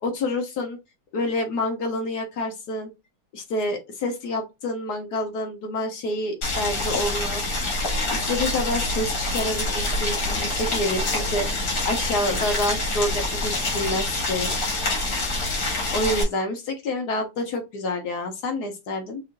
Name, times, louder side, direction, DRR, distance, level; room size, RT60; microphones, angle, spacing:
voice 1, 0.0-0.8 1.1-2.9 3.3-7.4 8.1-14.5 15.9-19.2, left 1 dB, 65° left, 1.8 m, -28 dB
Boiling, 6.4-16.2, left 2 dB, 80° left, 2.8 m, -26 dB
6.1 x 2.6 x 2.6 m
omnidirectional pair, 1.8 m